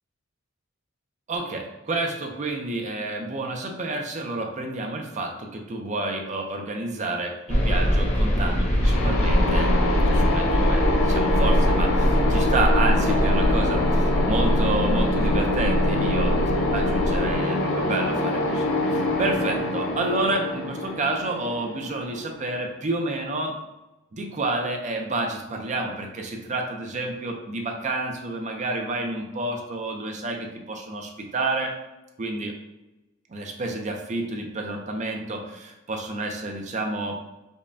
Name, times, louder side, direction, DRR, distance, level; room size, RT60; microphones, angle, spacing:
voice 1, 1.3-16.4 16.7-23.5 24.1-31.7 32.2-32.5 33.3-37.1, right 2 dB, 35° right, 2 dB, 0.5 m, -29 dB
sound 1, 7.5-17.3, equal, 35° left, 0.6 m, -23 dB
sound 2, 8.8-22.5, left 2 dB, 85° left, 0.6 m, -25 dB
5.1 x 2.2 x 2.6 m, 1.0 s
head